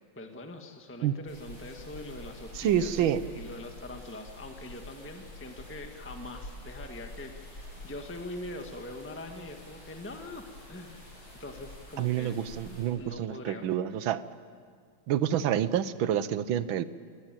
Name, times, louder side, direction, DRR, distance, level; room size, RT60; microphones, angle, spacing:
voice 1, 0.1-11.0 11.4-12.4 13.0-13.6, left 2 dB, 5° left, 4 dB, 1.4 m, -43 dB
sound 1, 1.3-12.9, left 1 dB, 80° left, 8.9 m, -47 dB
voice 2, 2.5-3.2 12.0-14.2 15.1-16.9, right 10 dB, 75° right, 15 dB, 1.6 m, -28 dB
26.0 x 20.0 x 9.1 m, 2.1 s
omnidirectional pair, 2.3 m